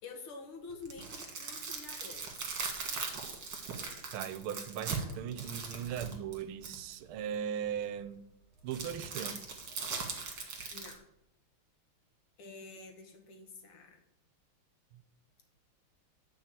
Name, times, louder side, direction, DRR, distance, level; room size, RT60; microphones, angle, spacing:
voice 1, 0.0-2.5 10.7-11.0 12.4-14.0, left 4 dB, 85° left, 2.4 m, -48 dB
sound 1, 0.7-6.9 8.7-10.9, right 5 dB, 60° right, 2.2 m, -39 dB
voice 2, 4.1-8.2 8.6-9.4, right 9 dB, 80° right, 1.5 m, -38 dB
9.7 x 4.8 x 7.5 m
omnidirectional pair, 2.3 m